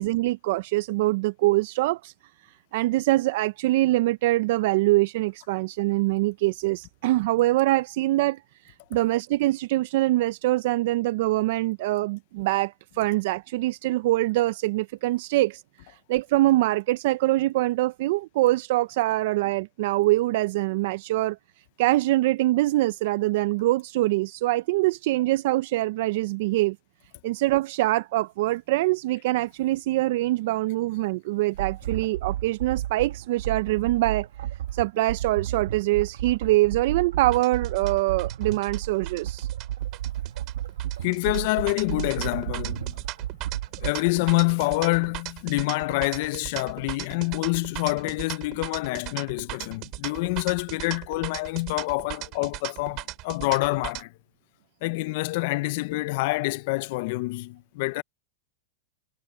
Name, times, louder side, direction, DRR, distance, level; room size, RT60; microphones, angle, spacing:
voice 1, 0.0-2.1 2.7-15.6 15.9-21.4 21.8-26.8 27.2-34.3 34.7-39.5, right 17 dB, 60° right, 0.5 m, -24 dB
sound 1, 31.5-43.9, right 12 dB, 80° right, 1.3 m, -33 dB
sound 2, 37.3-54.0, right 19 dB, 40° right, 6.7 m, -37 dB
voice 2, 41.0-43.0 43.8-54.1 54.8-58.0, left 23 dB, 55° left, 0.5 m, -27 dB
supercardioid pair, 135°, 0 cm